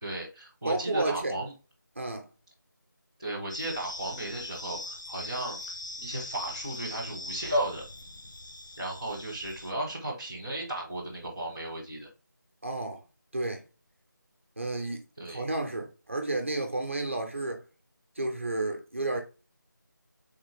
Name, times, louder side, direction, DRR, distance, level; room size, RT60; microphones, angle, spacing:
voice 1, 0.0-1.5 3.2-5.6 6.0-7.8 8.8-12.1 15.2-15.4, right 1 dB, 15° left, 0.4 m, -34 dB
voice 2, 0.6-1.3 2.0-2.3 12.6-13.0 13.3-13.6 14.6-15.0 15.3-17.6 18.2-19.2, right 2 dB, 40° right, 0.5 m, -31 dB
sound 1, 3.5-9.7, left 2 dB, 70° left, 0.6 m, -41 dB
3.4 x 2.1 x 3.1 m
figure-of-eight pair, 175°, 11 cm